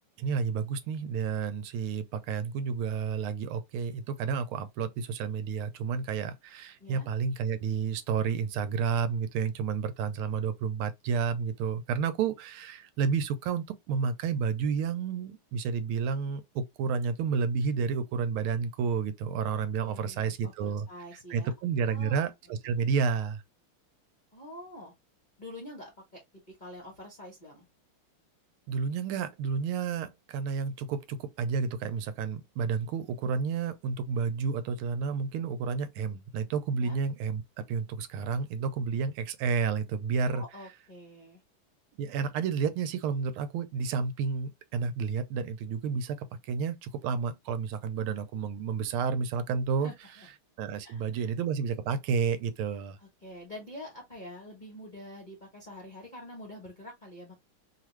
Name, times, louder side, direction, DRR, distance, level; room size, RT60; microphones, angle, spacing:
voice 1, 0.2-20.9 21.3-23.4 28.7-37.4 37.7-40.4 42.0-49.9 50.6-53.0, right 6 dB, 85° right, 1.4 m, -31 dB
voice 2, 19.6-21.5 21.9-22.3 24.3-24.9 25.4-27.6 36.8-37.0 40.3-41.4 49.8-50.3 50.8-51.3 53.0-57.3, left 1 dB, 45° left, 0.6 m, -46 dB
3.2 x 2.4 x 3.0 m
omnidirectional pair, 2.3 m